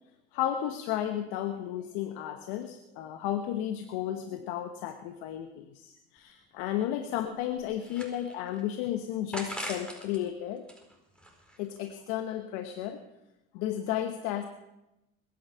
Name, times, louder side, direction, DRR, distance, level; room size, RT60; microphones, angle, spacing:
voice 1, 0.3-10.6 11.6-13.0 13.5-14.4, left 11 dB, 80° left, 8 dB, 1.1 m, -33 dB
sound 1, 6.2-6.3 6.6-6.7 7.3-8.6 9.3-10.2 10.6-11.8, equal, 5° left, 4.6 m, -41 dB
21.5 x 10.0 x 5.7 m, 0.93 s
supercardioid pair, 75°, 29 cm